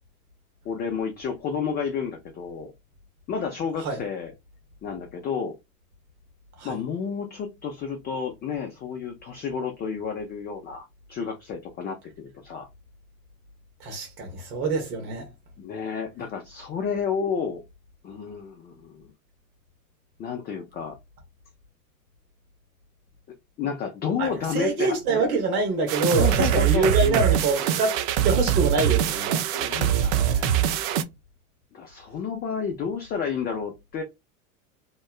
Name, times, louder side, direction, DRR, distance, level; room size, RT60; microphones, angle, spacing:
voice 1, 0.6-2.7 3.3-4.3 4.8-5.6 6.6-12.7 15.6-17.6 18.0-19.1 20.2-21.0 23.6-25.0 26.1-27.2 29.5-30.8 31.7-34.0, left 6 dB, 25° left, 0.4 m, -31 dB
voice 2, 13.8-15.3 24.2-29.4, right 3 dB, 80° right, 1.1 m, -25 dB
sound 1, 25.9-31.0, right 10 dB, 55° right, 0.5 m, -23 dB
2.8 x 2.1 x 2.3 m
hypercardioid pair, 90°, 43 cm